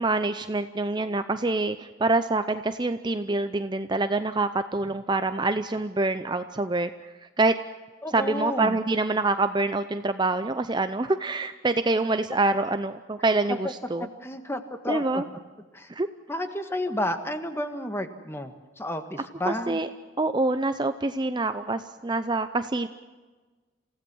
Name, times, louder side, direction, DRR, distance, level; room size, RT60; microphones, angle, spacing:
voice 1, 0.0-6.9 7.4-7.5 8.1-14.1 14.9-15.2 15.9-16.1 19.5-19.9 20.2-22.9, right 2 dB, 25° right, 10 dB, 0.6 m, -26 dB
voice 2, 8.0-8.8 13.5-13.6 14.0-15.2 15.7-15.9 16.3-19.8, left 1 dB, 15° left, 8 dB, 1.6 m, -31 dB
28.0 x 16.0 x 6.3 m, 1.3 s
head